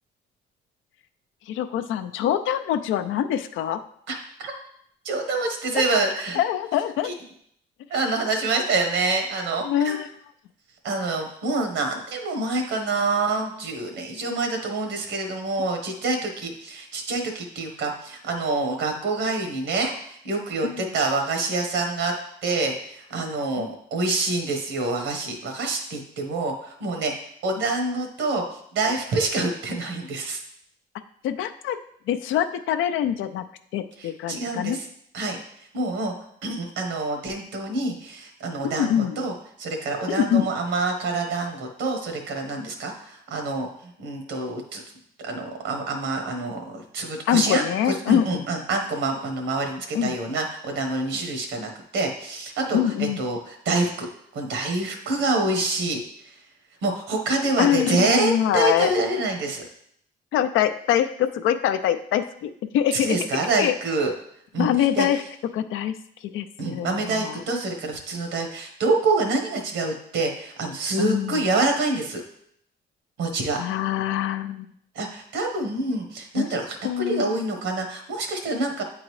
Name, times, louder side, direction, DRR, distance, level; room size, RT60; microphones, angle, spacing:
voice 1, 1.5-3.8 6.4-7.1 9.6-10.1 23.6-23.7 31.2-31.8 32.1-33.4 33.7-34.8 38.6-39.2 40.1-40.5 47.3-48.4 49.9-50.1 52.7-53.2 57.6-58.9 60.3-63.2 63.6-63.7 64.6-65.2 65.5-65.9 66.3-67.4 71.0-71.4 73.6-74.7 76.4-76.5 76.8-77.4, left 10 dB, 80° left, 10 dB, 0.5 m, -24 dB
voice 2, 4.1-4.5 5.0-6.4 7.0-7.1 7.9-10.0 10.8-22.1 22.4-27.1 27.4-30.4 34.0-34.8 35.1-36.1 36.4-39.3 39.6-44.8 45.2-54.1 54.3-56.0 56.2-56.4 56.8-59.6 62.9-64.1 64.5-65.1 66.6-72.2 73.2-73.6 74.9-78.8, right 3 dB, 90° right, 4 dB, 1.2 m, -26 dB
8.6 x 3.8 x 3.1 m, 0.69 s
cardioid pair, 90°, 20 cm